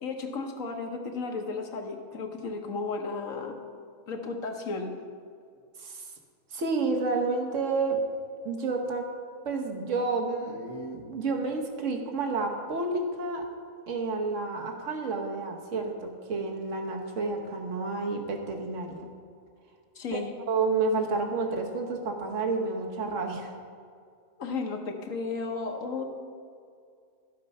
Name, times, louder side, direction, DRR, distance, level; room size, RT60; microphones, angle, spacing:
voice 1, 0.0-3.6 4.1-4.9 20.0-20.3 24.4-26.0, left 4 dB, 75° left, 3 dB, 1.5 m, -34 dB
voice 2, 6.5-8.0 8.4-9.1 9.4-13.5 13.9-19.1 20.1-20.2 20.5-23.5, right 3 dB, 65° right, 3 dB, 1.5 m, -30 dB
12.5 x 7.5 x 5.5 m, 2.2 s
omnidirectional pair, 1.4 m